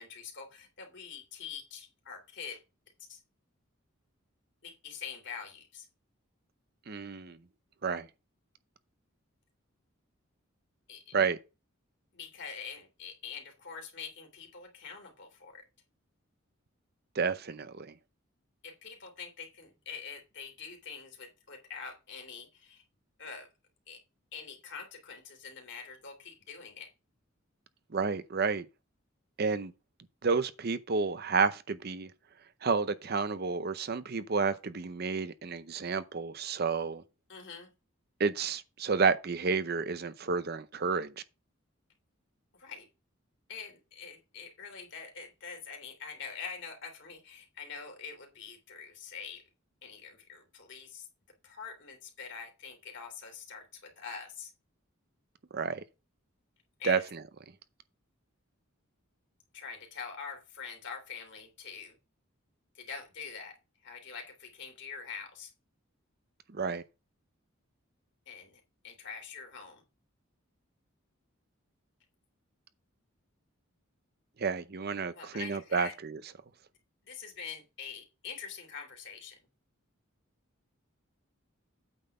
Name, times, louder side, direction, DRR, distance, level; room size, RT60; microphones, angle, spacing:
voice 1, 0.0-2.6 3.1-3.2 4.6-5.9 10.9-11.2 12.1-15.6 18.6-22.8 23.2-23.5 23.9-24.0 24.3-26.9 37.3-37.7 42.5-42.9 43.5-49.4 49.8-51.1 51.4-54.5 56.8-57.0 59.5-62.0 62.7-63.5 63.8-65.5 68.3-69.8 75.1-75.9 77.0-79.4, left 6 dB, 60° left, 3.0 m, -45 dB
voice 2, 6.9-7.4 7.8-8.1 11.1-11.4 17.2-17.9 27.9-28.7 29.4-29.7 30.2-32.1 32.6-37.0 38.2-41.1 55.5-55.8 56.8-57.2 66.5-66.8 74.4-76.2, right 5 dB, 50° right, 0.6 m, -30 dB
8.8 x 4.0 x 6.5 m
head